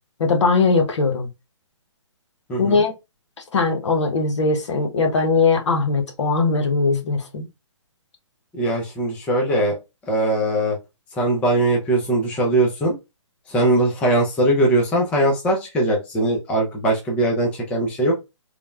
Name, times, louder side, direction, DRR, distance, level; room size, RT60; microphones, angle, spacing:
voice 1, 0.2-1.3 2.6-2.9 3.5-7.5, left 4 dB, 70° left, 0.8 m, -20 dB
voice 2, 2.5-2.8 8.5-9.8 10.1-10.8 11.2-12.9 13.5-18.2, right 1 dB, 10° left, 0.4 m, -20 dB
3.1 x 2.0 x 2.3 m
hypercardioid pair, 150°, 16 cm